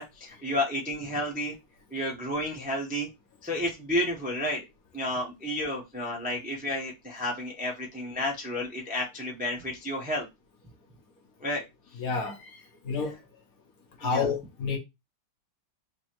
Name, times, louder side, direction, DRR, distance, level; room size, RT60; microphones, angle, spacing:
voice 1, 0.0-1.6 1.9-3.1 3.4-4.6 4.9-10.3 11.4-11.7 14.0-14.3, left 1 dB, 15° right, 0.3 m, -31 dB
voice 2, 12.0-12.6 12.8-13.2 14.0-14.8, left 5 dB, 60° left, 1.1 m, -29 dB
4.0 x 2.8 x 2.9 m
omnidirectional pair, 2.1 m